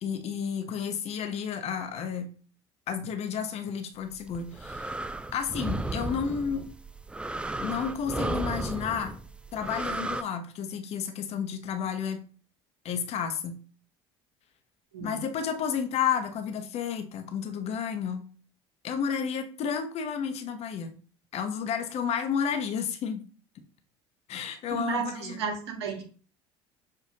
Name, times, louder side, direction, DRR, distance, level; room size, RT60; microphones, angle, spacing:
voice 1, 0.0-2.3 2.9-4.9 5.3-6.7 7.6-9.2 9.5-12.2 12.8-13.6 15.0-18.2 18.8-20.9 21.3-23.2 24.3-25.4, left 7 dB, 50° left, 0.7 m, -31 dB
sound 1, 4.2-10.2, right 2 dB, 5° right, 0.3 m, -34 dB
voice 2, 24.7-26.0, right 6 dB, 80° right, 0.8 m, -33 dB
6.5 x 2.5 x 2.7 m
hypercardioid pair, 65°, 14 cm